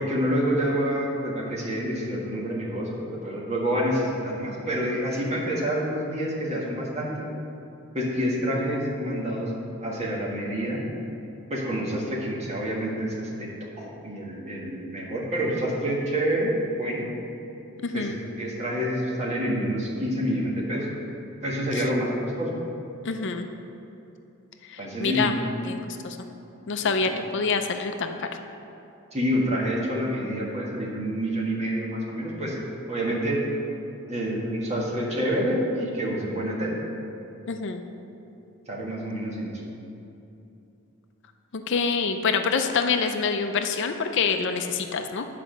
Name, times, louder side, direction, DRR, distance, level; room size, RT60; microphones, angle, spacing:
voice 1, 0.0-7.2 7.9-9.5 9.8-10.8 11.5-13.5 13.8-17.1 17.9-20.9 21.4-22.6 24.8-25.4 27.0-27.1 29.1-32.6 32.9-33.4 34.1-36.8 38.7-39.6, equal, 30° right, -4 dB, 1.7 m, -27 dB
voice 2, 17.8-18.2 21.7-21.8 23.0-23.5 24.7-25.3 25.6-26.2 26.7-28.3 37.5-37.8 41.5-45.3, left 5 dB, 55° left, 6 dB, 0.5 m, -26 dB
9.7 x 5.0 x 6.4 m, 2.8 s
head